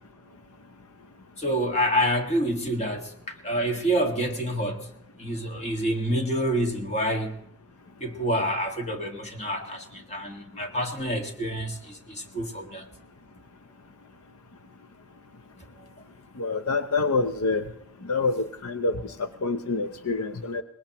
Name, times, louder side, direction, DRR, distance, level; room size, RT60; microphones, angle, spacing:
voice 1, 1.4-4.9 5.2-7.4 8.0-12.9, equal, 30° left, 3 dB, 1.8 m, -27 dB
voice 2, 16.4-17.7 18.0-20.6, left 3 dB, 75° left, 10 dB, 0.7 m, -27 dB
23.5 x 21.0 x 3.0 m, 0.77 s
head